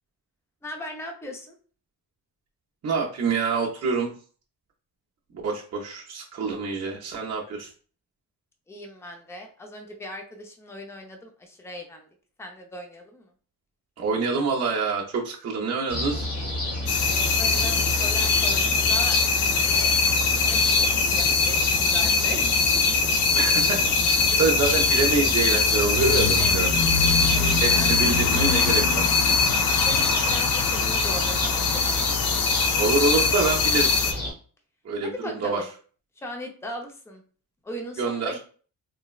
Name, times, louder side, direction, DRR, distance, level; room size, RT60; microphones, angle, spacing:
voice 1, 0.6-1.5 8.7-12.1 12.4-13.3 17.0-22.8 24.3-24.4 26.4-26.7 27.3-28.0 29.5-32.0 35.0-35.7 36.2-37.2 37.6-38.4, equal, 5° left, 3 dB, 0.5 m, -39 dB
voice 2, 2.8-4.1 5.4-7.7 14.0-16.3 23.3-23.8 24.0-26.7 27.6-29.4 32.8-33.9 34.9-35.1 35.4-35.6 38.0-38.3, right 4 dB, 45° right, -2 dB, 0.5 m, -26 dB
sound 1, 15.9-34.3, left 1 dB, 50° left, 1.5 m, -30 dB
sound 2, 16.9-34.1, left 5 dB, 70° left, 0.5 m, -22 dB
3.8 x 2.0 x 2.3 m, 0.41 s
wide cardioid pair, 105°, 37 cm